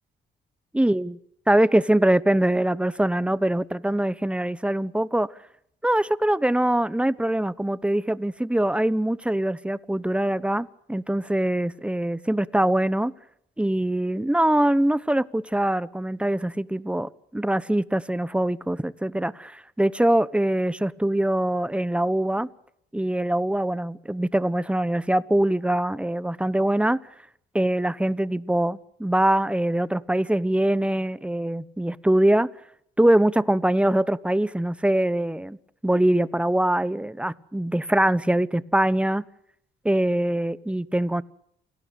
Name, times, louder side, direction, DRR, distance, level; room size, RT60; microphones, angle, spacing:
voice 1, 0.7-1.2 1.5-5.3 5.8-13.1 13.6-22.5 22.9-27.0 27.5-32.5 33.0-35.6 35.8-39.3 39.8-41.2, right 1 dB, 5° right, 18 dB, 1.0 m, -23 dB
28.5 x 18.5 x 8.3 m, 0.72 s
cardioid pair, 90°, 20 cm